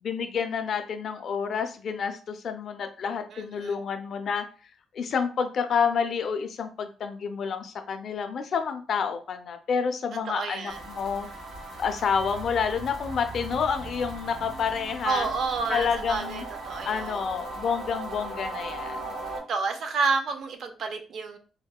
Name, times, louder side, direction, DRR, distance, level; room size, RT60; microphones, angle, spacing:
voice 1, 0.0-4.5 4.9-11.3 11.8-15.3 15.7-16.4 16.9-19.0, left 6 dB, 55° left, 7 dB, 0.4 m, -29 dB
voice 2, 3.3-3.8 10.2-10.8 15.0-17.2 19.5-21.4, right 4 dB, 60° right, 7 dB, 0.4 m, -30 dB
sound 1, 10.7-19.4, right 2 dB, 80° right, 1.4 m, -38 dB
3.6 x 2.0 x 2.3 m, 0.37 s
cardioid pair, 135°, 0 cm